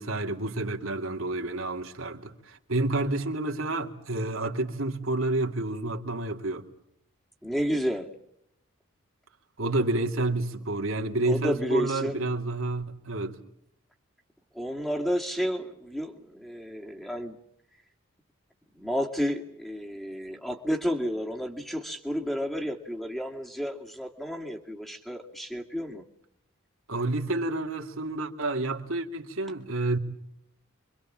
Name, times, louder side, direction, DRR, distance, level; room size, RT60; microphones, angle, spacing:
voice 1, 0.0-6.6 9.6-13.4 26.9-30.0, right 2 dB, 70° right, 2.4 m, -29 dB
voice 2, 7.4-8.1 11.2-12.3 14.5-17.4 18.8-26.0, equal, ahead, 2.3 m, -31 dB
28.0 x 24.5 x 7.4 m
head